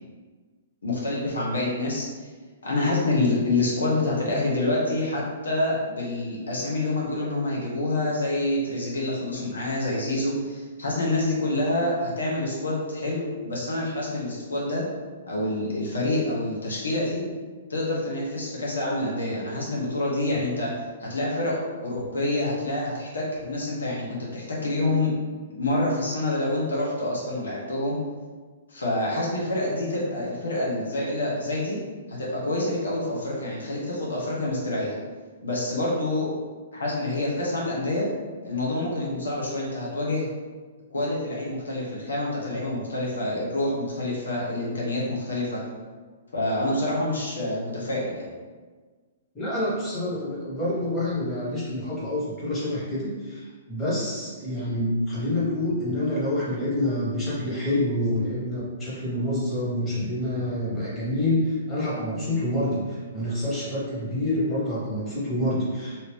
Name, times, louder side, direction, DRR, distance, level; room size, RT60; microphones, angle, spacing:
voice 1, 0.8-2.3 2.6-14.8 15.3-17.2 17.7-20.7 21.0-21.6 21.8-25.1 25.5-28.0 28.7-31.8 32.1-35.0 35.4-36.3 36.7-38.1 38.4-40.3 40.9-45.6 46.3-48.2, left 2 dB, 85° left, -5 dB, 0.9 m, -27 dB
voice 2, 49.3-66.0, left 1 dB, 15° left, -9 dB, 1.5 m, -27 dB
2.7 x 2.6 x 3.5 m, 1.4 s
hypercardioid pair, 125°, 0 cm